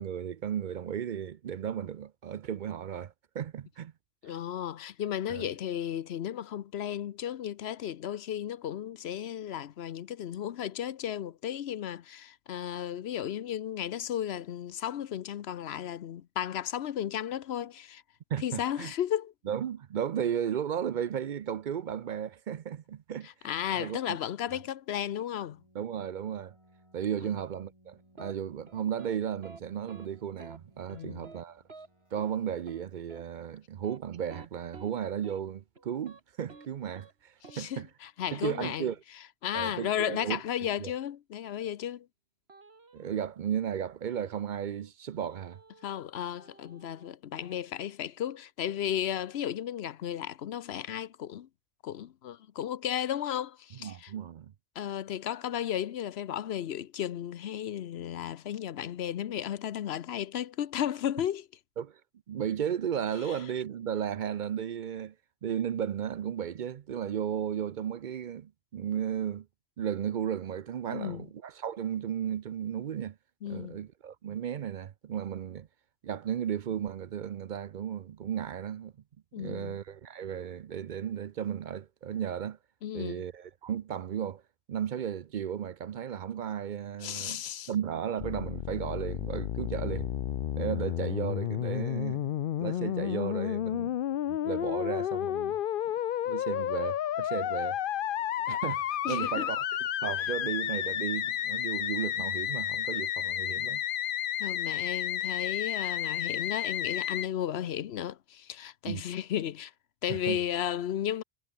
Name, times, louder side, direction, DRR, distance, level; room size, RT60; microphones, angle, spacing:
voice 1, 0.0-3.9 5.3-5.5 18.3-18.9 19.5-23.3 23.8-24.2 25.7-26.5 26.9-31.6 32.1-37.9 38.3-39.0 39.5-40.4 40.8-40.9 42.9-45.6 53.8-54.5 61.8-62.0 62.3-65.1 65.4-69.5 69.8-73.2 73.5-75.7 76.0-78.9 79.4-82.6 82.9-84.4 84.7-87.4 87.7-90.1 90.5-94.0 94.3-95.6 96.3-97.8 98.5-99.6 100.0-103.8 108.9-109.0 110.1-110.4, right 9 dB, 55° right, 0.6 m, -34 dB
voice 2, 4.2-18.0 18.4-19.3 23.2-25.6 27.2-27.3 30.9-31.3 37.5-38.9 39.4-42.1 45.8-51.5 51.8-54.1 54.8-61.5 63.3-63.4 70.9-71.3 73.4-73.8 79.3-79.8 82.8-83.3 87.0-87.7 99.0-99.5 104.4-109.7 110.0-111.2, left 10 dB, 90° left, 1.0 m, -34 dB
Keyboard (musical), 25.4-33.5, right 1 dB, 30° right, 7.8 m, -64 dB
sound 1, 28.2-28.3 28.7-29.2 29.4-29.6 29.9-30.1 30.4-30.6 30.9-31.4 31.7-31.9 32.2-32.3 32.7-32.8 33.1-33.2 33.7-34.9 35.2-35.4 35.8-36.2 36.5-36.7 36.9-37.1 37.4-37.6 39.8-40.5 42.5-43.2 44.1-44.9 45.3-46.1 46.4-47.6, right 3 dB, 85° right, 2.8 m, -52 dB
Musical instrument, 88.2-107.3, left 11 dB, 65° left, 0.7 m, -31 dB
omnidirectional pair, 1.0 m